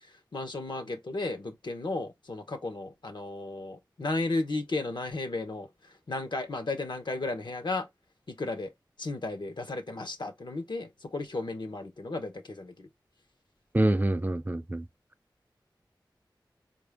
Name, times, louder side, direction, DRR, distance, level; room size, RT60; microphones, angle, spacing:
voice 1, 0.3-5.7 6.1-7.9 8.3-8.7 9.0-12.9, left 2 dB, 70° left, 0.9 m, -34 dB
voice 2, 13.7-14.8, right 1 dB, 20° right, 0.4 m, -26 dB
4.3 x 2.6 x 3.4 m
wide cardioid pair, 45°, 8 cm